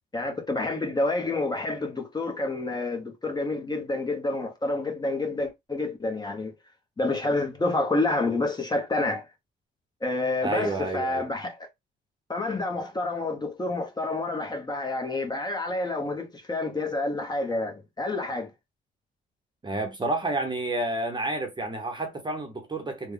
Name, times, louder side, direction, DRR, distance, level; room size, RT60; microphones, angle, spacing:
voice 1, 0.1-6.5 7.0-9.3 10.0-11.7 12.3-18.5, left 2 dB, 20° left, 1.1 m, -28 dB
voice 2, 10.4-11.3 19.6-23.1, right 2 dB, 20° right, 0.9 m, -30 dB
3.3 x 2.3 x 3.6 m
cardioid pair, 90°, 20 cm